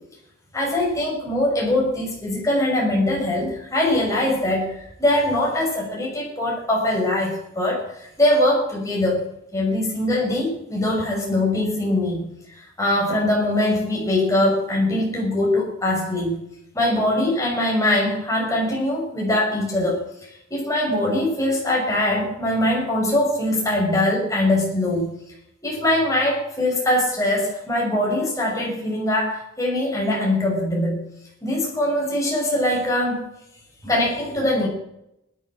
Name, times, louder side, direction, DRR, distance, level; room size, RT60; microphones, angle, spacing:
voice 1, 0.5-7.8 8.2-16.4 16.7-20.1 20.5-25.1 25.6-31.0 31.4-33.3 33.8-34.7, left 1 dB, 15° left, -3 dB, 6.0 m, -22 dB
17.5 x 11.5 x 6.1 m, 0.79 s
head